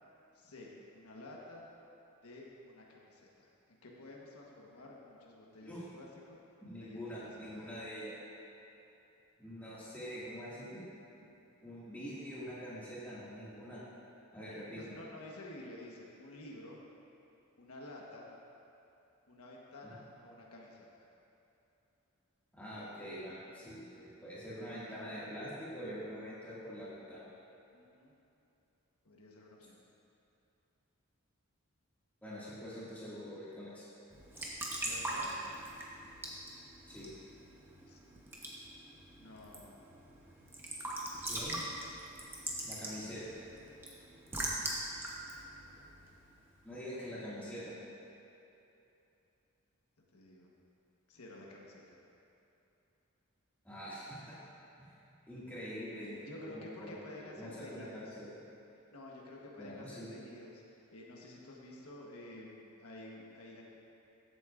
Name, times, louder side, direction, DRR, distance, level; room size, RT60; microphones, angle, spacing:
voice 1, 0.3-1.7 2.2-6.4 6.8-7.7 14.8-16.8 17.6-18.3 19.3-20.9 27.7-28.1 29.0-29.8 34.8-35.4 37.8-38.0 39.2-39.7 50.1-50.5 51.1-52.0 56.2-58.2 58.9-63.6, left 1 dB, 90° left, -3 dB, 1.3 m, -51 dB
voice 2, 6.6-8.2 9.4-10.8 11.6-13.8 14.3-15.0 19.8-20.0 22.5-27.3 32.2-33.9 36.9-37.1 41.3-41.6 42.6-43.2 46.6-47.7 53.6-54.4 55.3-56.9 57.2-58.3 59.6-60.1, equal, 5° left, -10 dB, 2.1 m, -45 dB
Raindrop / Drip / Trickle dribble, 34.1-46.6, right 1 dB, 10° right, 0.9 m, -42 dB
14.0 x 8.3 x 2.5 m, 2.8 s
head